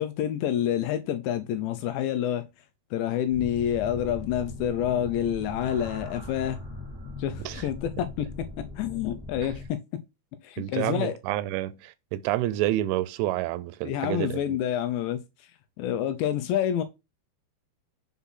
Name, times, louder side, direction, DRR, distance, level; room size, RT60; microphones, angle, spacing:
voice 1, 0.0-2.5 2.9-6.6 7.2-9.8 10.4-11.2 13.8-15.2 15.8-16.8, left 10 dB, 80° left, 2.7 m, -28 dB
sound 1, 3.3-9.7, left 2 dB, 15° left, 1.0 m, -40 dB
voice 2, 10.6-14.4, right 14 dB, 85° right, 3.0 m, -29 dB
7.1 x 3.8 x 5.7 m
omnidirectional pair, 5.5 m